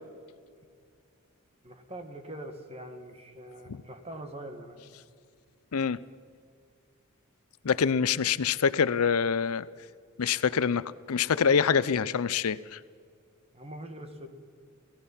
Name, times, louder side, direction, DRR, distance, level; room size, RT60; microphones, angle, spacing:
voice 1, 1.6-4.8 13.5-14.3, right 1 dB, 30° right, 6 dB, 1.9 m, -43 dB
voice 2, 7.6-9.7 10.2-12.8, left 6 dB, 80° left, 17 dB, 0.5 m, -25 dB
28.0 x 17.0 x 5.7 m, 2.2 s
head